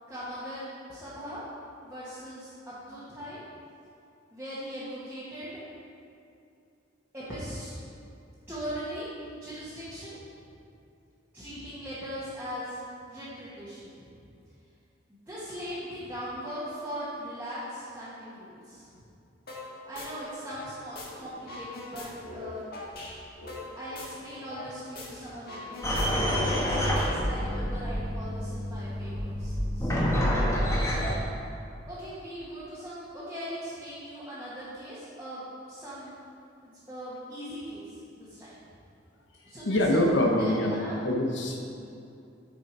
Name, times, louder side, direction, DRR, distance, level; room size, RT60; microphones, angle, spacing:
voice 1, 0.1-1.4 1.8-3.4 4.3-5.6 7.1-7.8 8.5-10.2 11.3-12.8 13.1-14.1 15.1-19.1 19.8-22.7 23.7-30.1 31.9-36.1 36.6-38.6 39.4-40.0 40.4-40.9, equal, 10° right, -12 dB, 1.6 m, -40 dB
sound 1, 19.5-19.7 19.9-21.1 21.3-24.7 24.9-25.1 25.4-27.5, left 2 dB, 55° left, 1.6 m, -41 dB
sound 2, 25.8-31.1, equal, 15° left, 1.2 m, -28 dB
voice 2, 39.7-40.8 41.0-41.6, left 1 dB, 70° left, 1 dB, 0.9 m, -24 dB
9.0 x 5.1 x 4.7 m, 2.6 s
head